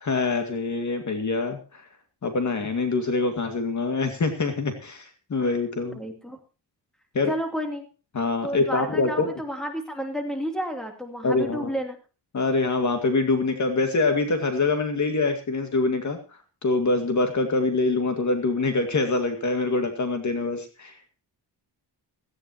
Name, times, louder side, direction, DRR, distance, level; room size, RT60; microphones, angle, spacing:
voice 1, 0.0-1.8 2.2-6.0 7.1-7.3 8.1-9.3 11.2-11.7 12.3-16.2 16.6-20.9, left 3 dB, 40° left, 6 dB, 2.2 m, -25 dB
voice 2, 5.8-6.4 7.3-7.9 8.4-12.0, equal, ahead, 4 dB, 2.9 m, -31 dB
17.5 x 15.0 x 2.9 m, 0.33 s
wide cardioid pair, 150°, 42 cm